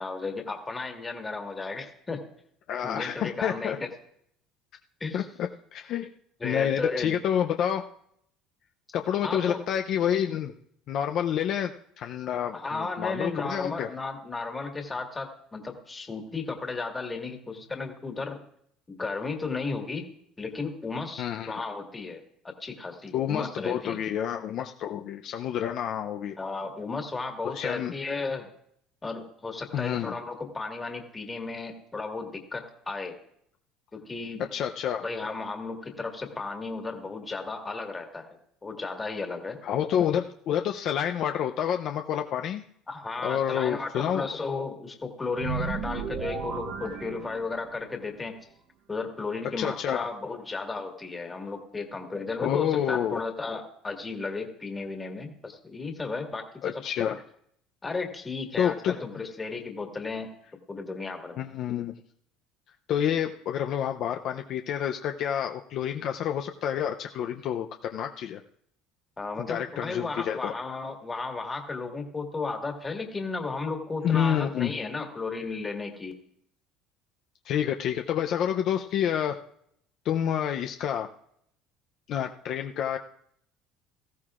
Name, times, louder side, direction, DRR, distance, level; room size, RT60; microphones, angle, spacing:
voice 1, 0.0-2.2 2.8-3.9 5.0-5.3 6.4-7.2 9.2-9.6 12.5-18.4 18.9-20.0 20.4-24.1 26.4-28.5 29.0-33.2 33.9-34.4 35.0-38.3 38.6-39.6 42.9-48.4 48.9-56.7 57.8-60.3 60.7-61.4 69.2-76.1, left 4 dB, 15° left, 3 dB, 1.7 m, -34 dB
voice 2, 2.7-3.8 5.1-6.1 6.4-7.8 8.9-10.5 10.9-13.9 21.2-21.6 23.1-26.4 27.5-27.9 29.7-30.1 34.5-35.0 39.6-42.6 43.2-44.3 49.6-50.1 52.4-53.2 56.6-57.2 58.6-59.0 61.4-61.9 62.9-68.4 69.4-70.5 74.0-74.7 77.5-79.4 80.0-81.1 82.1-83.0, left 9 dB, 50° left, 5 dB, 0.5 m, -28 dB
sound 1, 45.4-47.9, right 6 dB, 55° right, 1.1 m, -34 dB
18.5 x 14.5 x 2.5 m, 0.70 s
cardioid pair, 145°, 0 cm